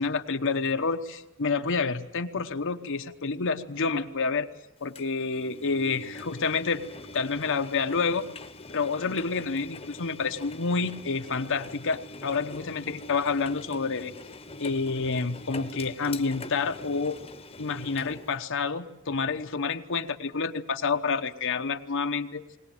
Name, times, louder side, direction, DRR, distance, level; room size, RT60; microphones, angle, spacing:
voice 1, 0.0-4.5 4.8-6.8 7.1-8.2 8.7-14.1 14.6-17.2 17.6-22.4, left 4 dB, 60° left, 7 dB, 1.0 m, -28 dB
Engine, 4.9-18.4, left 2 dB, 25° left, 1.1 m, -43 dB
21.0 x 19.0 x 9.0 m, 0.91 s
head